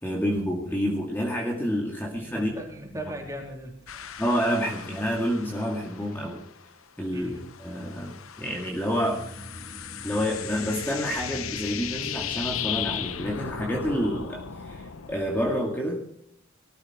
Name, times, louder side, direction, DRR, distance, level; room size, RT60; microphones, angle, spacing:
voice 1, 0.0-2.5 4.2-6.4 7.0-9.2 10.0-16.0, equal, 10° left, -1 dB, 2.1 m, -28 dB
voice 2, 2.2-4.2 7.1-7.5, right 1 dB, 15° right, 1 dB, 3.7 m, -39 dB
sound 1, 3.9-6.8 7.1-15.6, left 9 dB, 85° left, 0.9 m, -37 dB
sound 2, 8.9-14.0, equal, 30° right, 2.7 m, -43 dB
19.0 x 13.5 x 4.3 m, 0.69 s
head